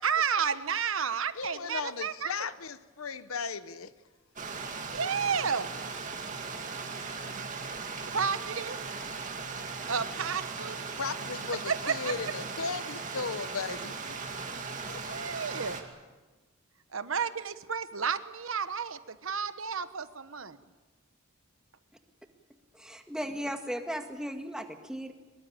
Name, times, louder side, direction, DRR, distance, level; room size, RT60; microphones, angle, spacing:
voice 1, 0.0-2.3 4.9-5.8 8.1-8.8 9.9-10.8 11.7-12.3 15.0-15.8 16.9-20.6, right 6 dB, 70° right, 12 dB, 1.1 m, -31 dB
voice 2, 1.4-3.9 11.0-13.9 14.7-15.0, left 5 dB, 80° left, 13 dB, 1.0 m, -36 dB
Stream, 4.4-15.8, right 4 dB, 35° right, 2.4 m, -38 dB
voice 3, 22.7-25.1, equal, 5° right, 5 dB, 1.8 m, -36 dB
23.5 x 22.0 x 8.9 m, 1.3 s
head